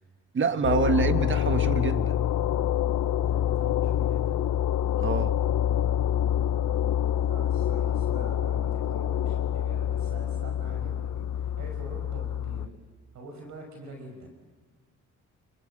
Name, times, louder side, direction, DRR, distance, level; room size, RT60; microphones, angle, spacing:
voice 1, 0.3-2.1 5.0-5.4, right 5 dB, 40° right, 10 dB, 1.7 m, -26 dB
sound 1, 0.6-12.7, left 10 dB, 70° left, 1.0 m, -26 dB
voice 2, 3.2-4.5 6.9-12.7 13.1-14.3, right 2 dB, 70° right, 3 dB, 5.9 m, -45 dB
29.5 x 22.0 x 8.9 m, 1.4 s
cardioid pair, 90°, 30 cm